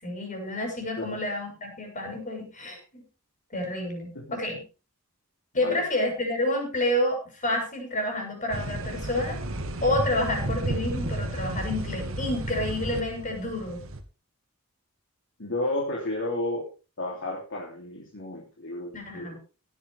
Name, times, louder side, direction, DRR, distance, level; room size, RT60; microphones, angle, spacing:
voice 1, 0.0-3.0 3.5-4.6 5.5-9.4 9.8-13.8 18.9-19.4, left 1 dB, 35° left, 2 dB, 6.9 m, -29 dB
sound 1, 8.5-14.0, right 1 dB, 65° right, 1.8 m, -32 dB
voice 2, 15.4-16.6 17.0-19.4, left 1 dB, 60° left, -1 dB, 3.1 m, -32 dB
17.0 x 11.0 x 3.5 m, 0.33 s
head